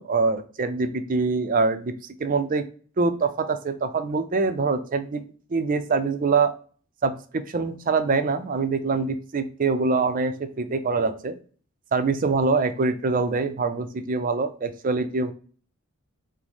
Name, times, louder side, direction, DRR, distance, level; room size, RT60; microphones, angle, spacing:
voice 1, 0.0-1.9 2.2-2.6 3.0-5.2 5.5-6.5 7.0-11.4 11.9-15.3, right 4 dB, 40° right, 9 dB, 0.4 m, -24 dB
6.0 x 2.1 x 3.5 m, 0.41 s
head